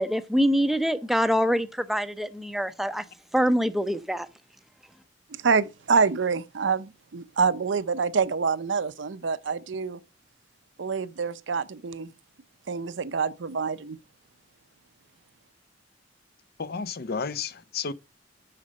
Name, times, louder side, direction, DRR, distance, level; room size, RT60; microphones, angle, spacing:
voice 1, 0.0-3.0 3.3-4.3, equal, ahead, 0.5 m, -24 dB
voice 2, 5.4-10.0 10.8-12.1 12.7-14.0, right 5 dB, 70° right, 0.6 m, -26 dB
voice 3, 16.6-17.9, left 5 dB, 55° left, 0.5 m, -32 dB
6.7 x 5.3 x 6.3 m
head